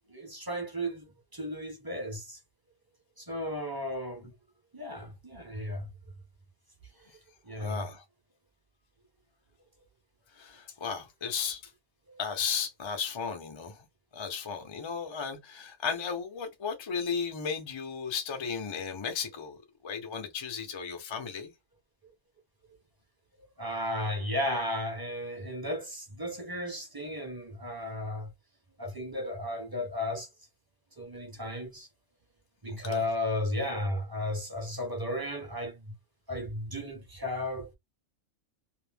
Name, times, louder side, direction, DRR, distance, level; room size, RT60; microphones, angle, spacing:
voice 1, 0.1-1.0 1.3-2.4 3.2-4.3 4.7-5.9 7.0-7.1 7.4-7.8 12.1-12.2 22.0-22.1 23.6-28.3 28.8-30.3 31.0-31.9 32.6-35.9 36.3-37.7, left 1 dB, 25° right, 0.5 m, -34 dB
voice 2, 7.6-8.0 10.3-11.7 12.2-13.9 14.1-21.5 32.7-33.0, left 6 dB, 45° left, 0.3 m, -35 dB
2.6 x 2.0 x 3.2 m
omnidirectional pair, 1.4 m